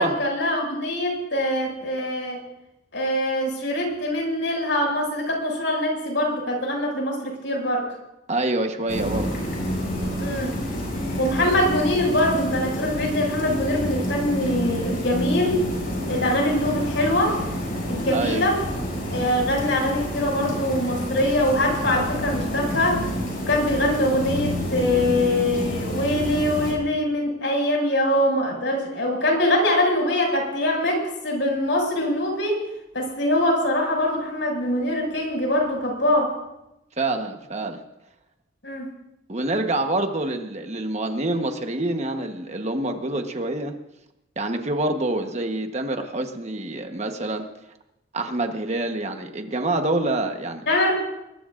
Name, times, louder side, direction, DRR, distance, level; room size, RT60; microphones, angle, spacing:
voice 1, 0.0-2.4 2.9-7.9 10.2-10.6 11.2-15.6 16.1-17.4 17.9-18.6 19.1-23.0 23.5-32.6 32.9-36.3 38.6-38.9 50.7-51.0, left 1 dB, 70° left, 0 dB, 6.3 m, -23 dB
voice 2, 8.3-9.4 18.1-18.5 37.0-37.8 39.3-43.7 44.4-47.4 48.1-50.7, right 2 dB, 35° right, 5 dB, 1.2 m, -26 dB
sound 1, 8.9-26.7, equal, 50° left, 6.8 m, -29 dB
23.0 x 21.0 x 2.6 m, 0.89 s
head